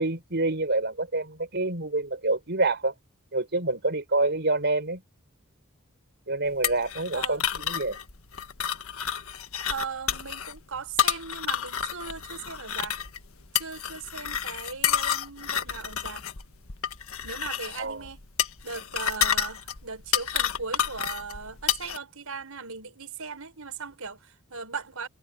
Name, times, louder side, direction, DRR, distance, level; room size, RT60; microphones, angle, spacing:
voice 1, 0.0-2.9 3.3-5.0 6.3-8.0 17.8-18.0, right 2 dB, 50° right, 5.1 m, -27 dB
sound 1, 6.6-22.0, left 9 dB, 75° left, 1.6 m, -30 dB
voice 2, 9.7-13.0 13.5-16.2 17.2-18.2 18.6-25.1, right 5 dB, 80° right, 5.3 m, -38 dB
head